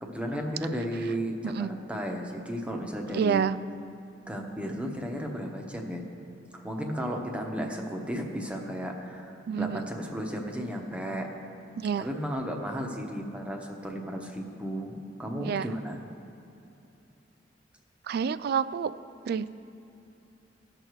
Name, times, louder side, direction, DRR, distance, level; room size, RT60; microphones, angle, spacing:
voice 1, 0.0-3.5 4.3-6.0 6.5-11.3 12.0-16.0, equal, 5° right, 1 dB, 1.0 m, -34 dB
voice 2, 3.1-3.6 9.5-9.8 11.8-12.0 15.4-15.7 18.1-18.9 19.3-19.5, right 7 dB, 55° right, 16 dB, 0.3 m, -28 dB
19.0 x 6.7 x 3.1 m, 2.8 s
head